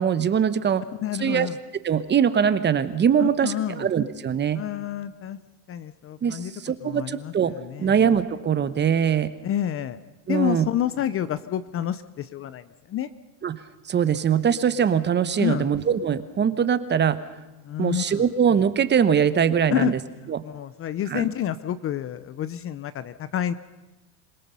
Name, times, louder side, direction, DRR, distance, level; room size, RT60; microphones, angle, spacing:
voice 1, 0.0-0.8 1.2-1.5 1.8-4.6 6.2-7.5 7.8-9.3 10.3-10.7 13.4-13.6 13.9-17.2 17.8-20.0 20.3-20.4 21.1-21.3, right 8 dB, 25° right, 13 dB, 1.0 m, -22 dB
voice 2, 1.0-1.6 3.2-3.9 4.5-5.4 5.7-6.5 6.8-8.0 9.4-10.0 10.3-13.1 15.4-15.7 17.6-18.2 19.7-19.9 20.4-23.5, left 11 dB, 30° left, 14 dB, 0.6 m, -29 dB
27.0 x 18.0 x 5.6 m, 1.1 s
supercardioid pair, 125°, 46 cm